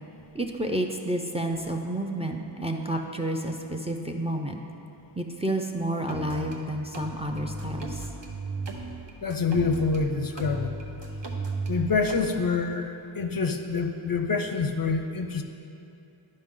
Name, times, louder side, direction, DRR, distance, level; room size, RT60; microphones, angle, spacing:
voice 1, 0.3-4.6 5.2-8.1, right 1 dB, 15° right, 3 dB, 0.4 m, -30 dB
sound 1, 6.1-6.6 6.9-10.0 10.4-12.2, right 3 dB, 60° right, 0.9 m, -35 dB
voice 2, 9.2-10.7 11.7-15.4, left 4 dB, 45° left, 6 dB, 0.5 m, -26 dB
10.5 x 5.3 x 3.7 m, 2.8 s
wide cardioid pair, 65°, 48 cm